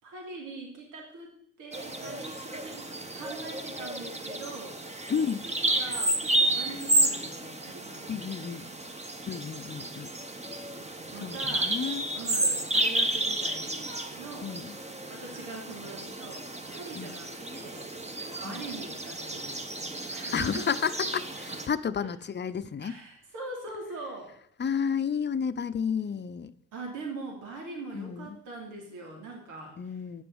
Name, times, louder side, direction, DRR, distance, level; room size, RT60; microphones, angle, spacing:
voice 1, 0.0-1.3 1.6-2.9 3.1-4.9 5.2-8.1 8.5-8.6 11.1-11.7 12.1-14.5 15.1-17.9 18.4-19.6 20.1-20.7 22.0-22.1 22.8-24.3 26.7-29.8, right 3 dB, 85° right, 0 dB, 3.1 m, -42 dB
Bird vocalization bird call bird song, 1.7-21.7, right 1 dB, 20° right, 1.5 m, -32 dB
voice 2, 5.1-5.4 8.1-8.7 9.3-10.1 11.2-12.0 14.4-14.8 17.0-17.2 18.4-18.6 20.3-23.0 24.6-26.5 27.9-28.4 29.8-30.2, left 7 dB, 35° left, 13 dB, 0.8 m, -31 dB
9.4 x 6.9 x 8.0 m, 0.68 s
cardioid pair, 90°, 30 cm